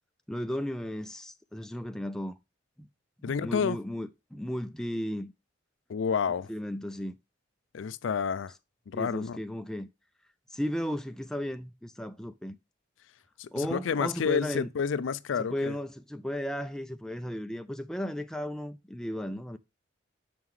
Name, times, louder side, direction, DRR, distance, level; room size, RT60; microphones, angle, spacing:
voice 1, 0.3-2.3 2.8-2.9 3.3-5.3 6.5-7.1 8.9-9.9 10.5-12.6 13.5-14.7 15.5-19.6, left 1 dB, 5° left, 0.3 m, -35 dB
voice 2, 3.2-3.8 5.9-6.5 7.7-8.5 8.9-9.4 13.4-15.7, left 6 dB, 80° left, 0.4 m, -29 dB
5.9 x 5.6 x 3.1 m
head